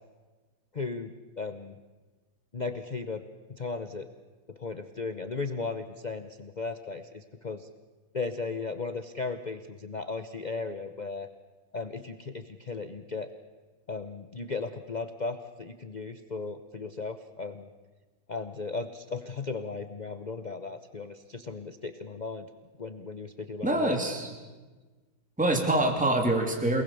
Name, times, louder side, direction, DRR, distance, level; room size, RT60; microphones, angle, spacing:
voice 1, 0.7-1.1 1.4-1.7 2.5-3.2 3.5-4.1 4.6-7.7 8.1-11.3 11.7-13.3 13.9-17.7 18.3-22.5 22.8-24.0, left 4 dB, 55° left, 8 dB, 0.5 m, -36 dB
voice 2, 23.6-24.3 25.4-26.8, right 1 dB, 5° right, 2 dB, 2.9 m, -25 dB
28.5 x 19.5 x 7.0 m, 1.3 s
omnidirectional pair, 2.2 m